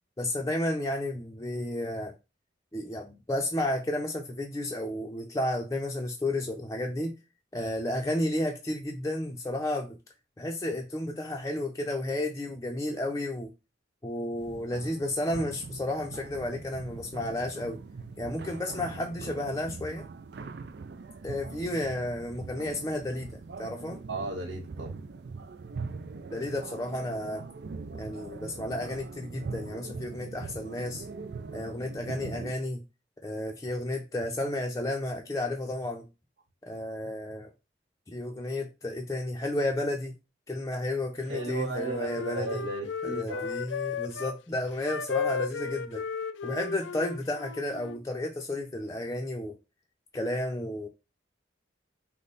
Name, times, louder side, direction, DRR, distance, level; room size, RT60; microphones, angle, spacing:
voice 1, 0.2-2.1 2.7-7.1 7.5-10.0 10.4-13.5 14.0-17.8 18.2-20.1 21.2-24.0 26.3-27.4 27.9-31.0 31.5-32.8 33.2-36.1 36.6-37.5 38.1-40.1 40.5-42.6 43.0-46.0 46.4-49.6 50.1-50.9, left 1 dB, 20° left, 0.5 m, -32 dB
sound 1, 14.4-32.6, right 4 dB, 65° right, 0.4 m, -42 dB
voice 2, 24.1-25.0 41.3-43.8, right 2 dB, 80° right, 1.5 m, -35 dB
Wind instrument woodwind instrument, 41.2-44.4 44.8-48.0, left 5 dB, 85° left, 0.4 m, -35 dB
5.2 x 2.2 x 4.0 m
head